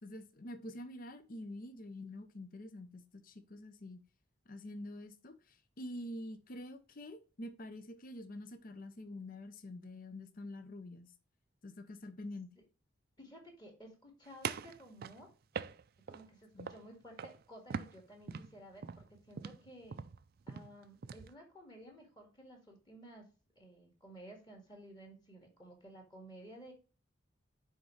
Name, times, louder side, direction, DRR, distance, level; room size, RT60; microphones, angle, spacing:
voice 1, 0.0-4.0 4.5-11.1 11.6-12.5 16.5-16.7, left 1 dB, 45° left, 0.7 m, -47 dB
voice 2, 13.2-15.3 16.1-20.0 20.5-23.3 23.6-26.7, right 1 dB, 20° left, 1.9 m, -54 dB
sound 1, 14.4-16.3 16.6-16.9 17.2-17.4 17.7-21.3, right 6 dB, 50° right, 0.4 m, -42 dB
9.2 x 3.6 x 3.2 m
head